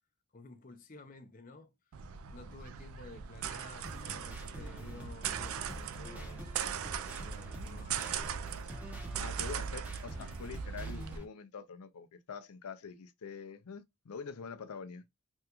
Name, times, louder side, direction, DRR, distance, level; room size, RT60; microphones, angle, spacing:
voice 1, 0.3-1.8 2.3-8.0, left 3 dB, 40° left, 0.6 m, -53 dB
sound 1, 1.9-11.2, right 7 dB, 75° right, 0.3 m, -39 dB
sound 2, 3.8-11.2, equal, 5° right, 0.6 m, -47 dB
voice 2, 9.2-15.0, left 5 dB, 90° left, 0.5 m, -45 dB
3.5 x 2.3 x 2.9 m
head